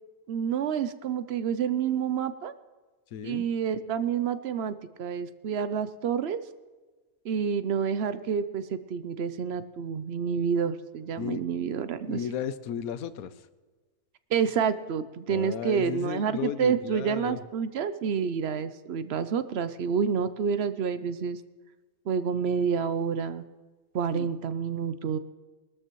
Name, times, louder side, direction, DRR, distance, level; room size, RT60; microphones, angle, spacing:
voice 1, 0.3-2.5 3.2-6.4 7.2-12.2 14.3-21.4 22.1-23.4 23.9-25.2, right 7 dB, 60° right, 12 dB, 0.7 m, -28 dB
voice 2, 3.1-3.5 11.2-11.4 12.1-13.5 15.3-17.4 24.1-24.3, left 8 dB, 75° left, 14 dB, 1.1 m, -34 dB
21.0 x 13.0 x 3.0 m, 1.3 s
omnidirectional pair, 1.6 m